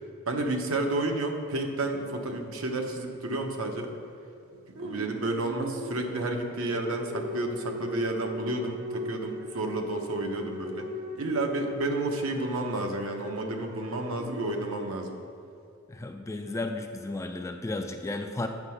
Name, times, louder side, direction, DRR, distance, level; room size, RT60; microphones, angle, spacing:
voice 1, 0.3-3.9 4.8-10.9 11.1-15.2, right 2 dB, 65° right, 3 dB, 0.8 m, -31 dB
sound 1, 4.8-15.2, equal, 90° right, 1.6 m, -39 dB
voice 2, 15.9-18.5, left 2 dB, 15° left, 5 dB, 0.3 m, -33 dB
8.1 x 4.5 x 5.6 m, 2.6 s
head